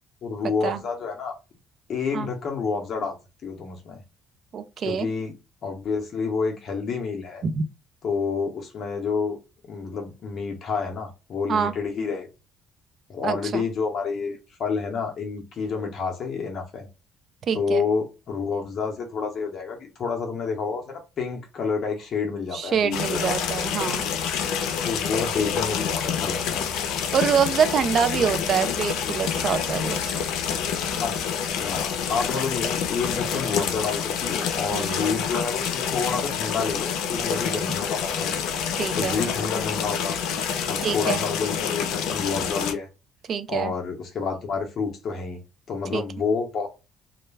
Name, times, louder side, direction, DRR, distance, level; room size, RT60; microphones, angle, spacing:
voice 1, 0.2-1.3 1.9-3.1 3.4-4.0 4.9-5.3 5.6-7.4 8.0-9.4 9.7-12.3 13.1-16.9 17.5-23.2 24.8-26.7 31.0-38.4 38.9-40.2 40.7-42.9 43.5-45.4 45.7-46.7, left 5 dB, 45° left, 0.7 m, -29 dB
voice 2, 4.5-5.1 7.4-7.6 11.5-11.7 13.2-13.6 17.5-17.8 22.5-24.0 27.1-30.3 34.7-35.1 38.8-39.2 40.8-41.2 43.3-43.7 45.9-46.0, right 7 dB, 45° right, 0.4 m, -25 dB
sound 1, 22.9-42.7, left 7 dB, 85° left, 0.5 m, -27 dB
2.3 x 2.1 x 3.2 m
cardioid pair, 140°, 0 cm